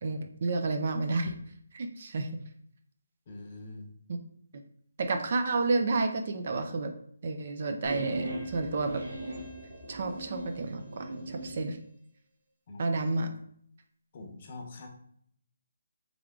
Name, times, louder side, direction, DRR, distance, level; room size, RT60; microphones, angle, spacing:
voice 1, 0.0-1.3 1.7-2.4 4.1-4.2 5.0-6.9 7.2-9.0 9.9-11.8 12.8-13.3, right 3 dB, 45° right, 6 dB, 0.5 m, -30 dB
voice 2, 3.3-3.9 12.7-13.0 14.1-14.9, left 2 dB, 35° left, 3 dB, 0.8 m, -44 dB
sound 1, 7.8-11.6, right 1 dB, 75° right, 1.3 m, -38 dB
3.5 x 3.4 x 3.6 m, 0.65 s
hypercardioid pair, 165°, 0 cm